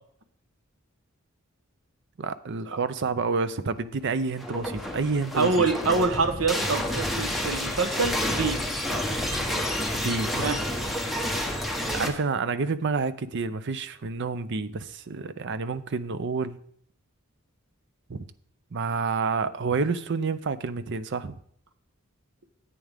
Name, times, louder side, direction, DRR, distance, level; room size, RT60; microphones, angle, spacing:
voice 1, 2.2-5.7 9.9-10.5 11.9-16.6 18.1-18.2 18.7-21.4, right 4 dB, 55° right, 14 dB, 0.6 m, -29 dB
sound 1, 4.3-12.1, left 1 dB, ahead, 1.1 m, -29 dB
voice 2, 5.4-8.6 10.4-10.6, right 4 dB, 75° right, 7 dB, 1.0 m, -25 dB
10.5 x 8.5 x 3.5 m, 0.63 s
head